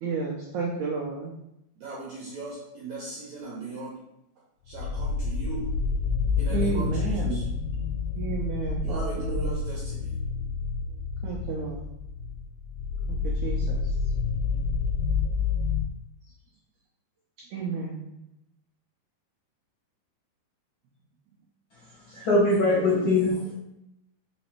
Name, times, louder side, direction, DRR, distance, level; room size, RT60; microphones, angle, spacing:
voice 1, 0.0-1.3 6.5-7.4 8.2-9.5 11.2-11.9 13.1-13.9 17.5-18.1 22.1-23.1, right 4 dB, 85° right, -2 dB, 1.6 m, -32 dB
voice 2, 1.8-4.0 4.7-5.7 6.4-7.4 8.8-10.2, right 2 dB, 70° right, -5 dB, 1.8 m, -38 dB
sound 1, 4.7-15.9, left 4 dB, 85° left, 2.5 m, -29 dB
voice 3, 22.1-23.5, left 2 dB, 45° left, -8 dB, 1.9 m, -22 dB
5.4 x 4.1 x 4.6 m, 0.84 s
omnidirectional pair, 4.6 m